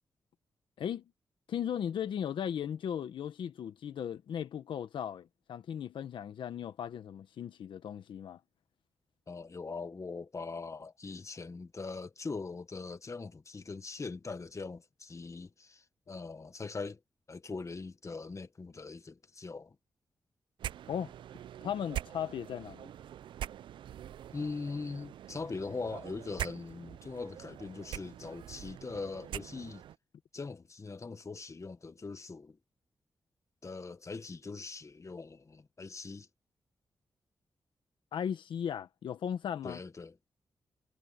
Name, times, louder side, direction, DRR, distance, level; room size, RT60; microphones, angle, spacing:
voice 1, 1.5-8.4 20.9-21.1 21.6-22.9 38.1-39.8, left 9 dB, 85° left, 1.3 m, -37 dB
voice 2, 9.3-17.0 17.3-19.7 24.3-29.8 30.3-32.6 33.6-36.3 39.6-40.1, left 4 dB, 40° left, 1.5 m, -41 dB
sound 1, 20.6-30.0, right 11 dB, 85° right, 0.4 m, -44 dB
cardioid pair, 65°, 8 cm